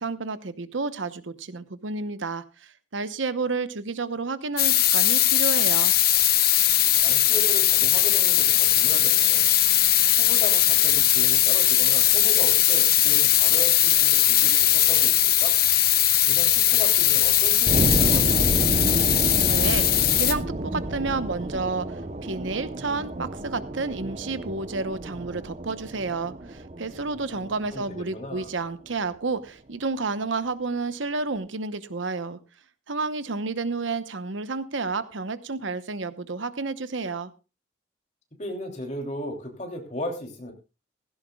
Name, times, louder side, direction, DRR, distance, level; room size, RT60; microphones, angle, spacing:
voice 1, 0.0-5.9 19.5-32.4 32.9-37.3, right 3 dB, 85° right, 12 dB, 0.9 m, -30 dB
sound 1, 4.6-20.3, left 13 dB, 55° left, 1.0 m, -20 dB
voice 2, 7.0-9.6 10.1-15.5 16.2-19.2 27.1-28.5 38.4-40.5, left 1 dB, 40° left, 2 dB, 3.0 m, -36 dB
sound 2, 17.7-28.4, right 1 dB, 35° right, 0.8 m, -30 dB
16.5 x 16.0 x 2.3 m, 0.30 s
head